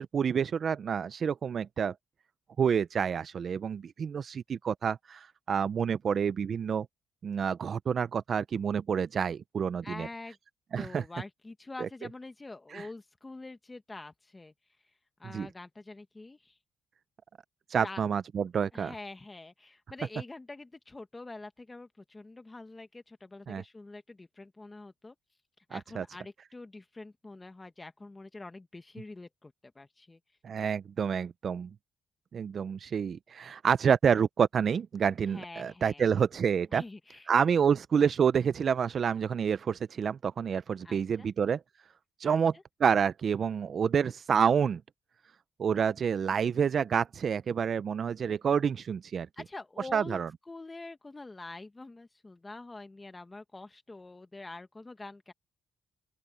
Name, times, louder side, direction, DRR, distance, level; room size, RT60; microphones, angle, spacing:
voice 1, 0.0-1.9 2.6-6.9 7.2-10.1 10.7-11.0 11.8-11.9 12.7-12.9 15.3-15.5 17.7-18.9 23.5-23.6 25.7-26.0 30.4-31.7 32.3-36.8 37.3-41.6 42.2-42.5 42.8-44.8 45.6-49.3 49.9-50.3, right 7 dB, 50° right, 0.5 m, -28 dB
voice 2, 9.8-10.4 10.8-14.5 15.2-16.6 17.8-18.0 18.7-25.1 25.7-30.2 35.3-36.2 36.7-37.3 40.8-41.3 42.3-42.6 46.3-46.7 49.4-50.2 50.5-55.3, left 2 dB, 20° left, 1.4 m, -45 dB
open air
cardioid pair, 90°, 0 cm